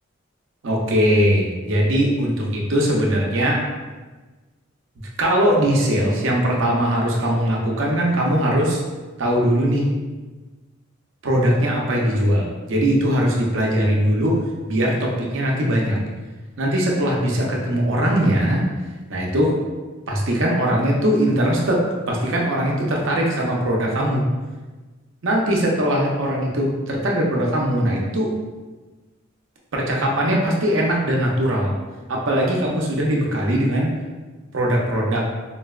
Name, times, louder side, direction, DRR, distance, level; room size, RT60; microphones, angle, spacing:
voice 1, 0.6-3.6 5.2-8.8 9.2-9.9 11.2-16.0 16.6-18.6 19.1-19.6 20.1-24.3 25.2-28.3 29.7-31.7 32.1-33.9 34.5-35.3, equal, 65° right, -2 dB, 0.6 m, -20 dB
3.8 x 2.0 x 2.3 m, 1.3 s
head